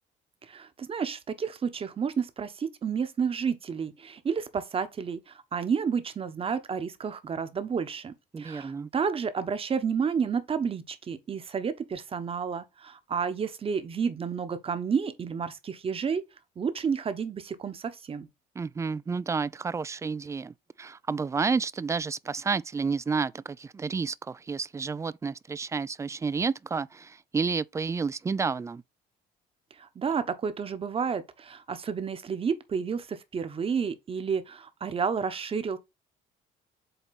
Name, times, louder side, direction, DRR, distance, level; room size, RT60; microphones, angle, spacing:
voice 1, 0.5-16.2 16.6-18.3 29.8-35.8, right 6 dB, 35° right, 1.1 m, -31 dB
voice 2, 8.3-8.9 18.6-28.8, right 5 dB, 15° right, 0.3 m, -30 dB
8.0 x 2.9 x 4.2 m
cardioid pair, 110°, 17 cm